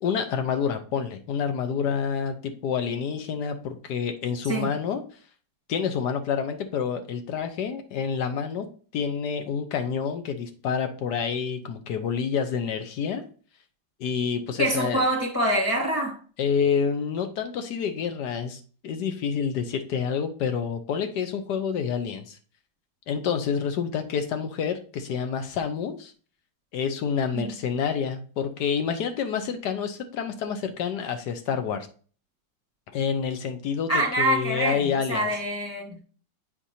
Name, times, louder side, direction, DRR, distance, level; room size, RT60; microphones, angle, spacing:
voice 1, 0.0-5.0 5.7-8.7 8.9-13.2 14.0-15.0 16.4-22.4 23.1-26.1 26.7-31.9 32.9-33.9 34.2-35.3, left 6 dB, 70° left, 1.2 m, -28 dB
voice 2, 14.6-16.2 27.3-27.5 33.9-36.0, right 1 dB, 10° left, 1.1 m, -25 dB
7.4 x 5.0 x 2.7 m
omnidirectional pair, 2.1 m